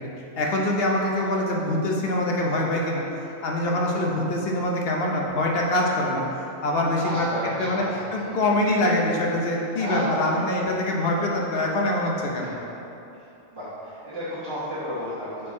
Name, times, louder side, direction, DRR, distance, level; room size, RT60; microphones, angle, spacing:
voice 1, 0.4-3.0 3.4-6.2 6.6-7.3 7.6-7.8 8.1-12.5, left 1 dB, 60° left, -1 dB, 0.9 m, -24 dB
voice 2, 6.9-8.4 9.7-10.5 12.4-12.6 13.1-13.2 13.5-15.5, equal, 20° right, -13 dB, 1.2 m, -32 dB
5.1 x 4.6 x 4.1 m, 2.8 s
omnidirectional pair, 1.2 m